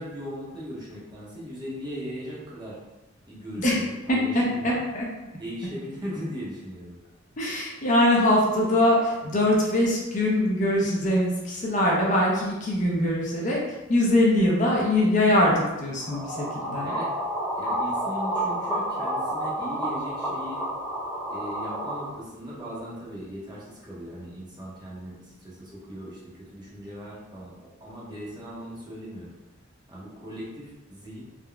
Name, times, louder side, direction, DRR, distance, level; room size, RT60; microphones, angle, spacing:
voice 1, 0.0-2.8 3.3-4.8 5.4-6.9 16.8-17.1 17.6-20.6 21.3-27.5 27.8-29.3 29.9-31.2, equal, 20° right, -6 dB, 0.7 m, -38 dB
voice 2, 4.1-5.0 7.4-13.6 13.9-16.9, left 1 dB, 40° left, -3 dB, 0.5 m, -22 dB
sound 1, 16.0-22.0, right 1 dB, 10° left, 1.0 m, -30 dB
3.6 x 2.1 x 2.3 m, 1.1 s
head